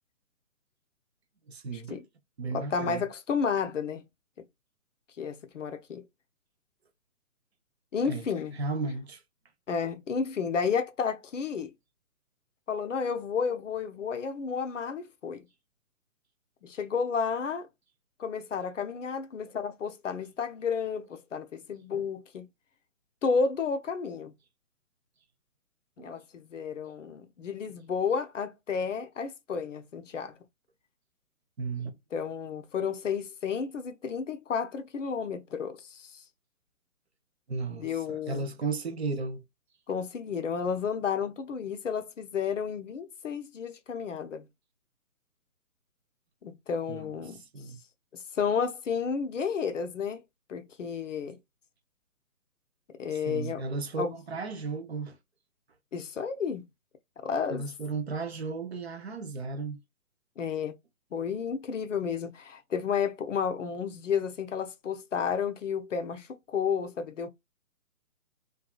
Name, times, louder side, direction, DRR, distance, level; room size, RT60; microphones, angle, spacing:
voice 1, 1.5-2.0 2.4-3.0 8.0-8.3 8.5-9.2 21.9-22.0 26.0-26.2 31.6-32.0 37.5-39.4 46.9-47.8 53.1-55.2 57.5-59.8, right 4 dB, 45° right, 0.6 m, -35 dB
voice 2, 2.5-4.0 5.2-6.0 7.9-8.6 9.7-11.7 12.7-15.4 16.6-17.7 18.2-22.5 23.2-24.3 26.0-30.3 32.1-36.2 37.7-38.4 39.9-44.5 46.4-47.4 48.1-50.2 50.5-51.4 52.9-53.6 54.0-54.1 55.9-56.7 57.2-57.7 60.4-60.7 61.1-67.3, left 6 dB, 55° left, 0.5 m, -32 dB
2.7 x 2.3 x 2.3 m
figure-of-eight pair, 145°, 45 cm